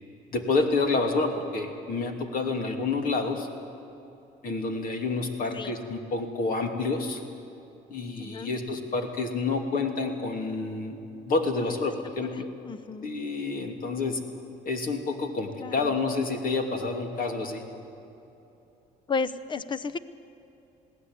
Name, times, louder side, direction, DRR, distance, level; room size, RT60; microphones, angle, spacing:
voice 1, 0.3-3.5 4.4-7.2 7.9-11.0 11.3-12.5 13.0-14.2 14.6-17.6, left 3 dB, 55° left, 4 dB, 2.7 m, -28 dB
voice 2, 8.2-8.6 12.6-13.1 15.6-15.9 19.1-20.0, left 4 dB, 30° left, 14 dB, 0.8 m, -32 dB
21.0 x 16.5 x 9.7 m, 2.9 s
cardioid pair, 110°, 17 cm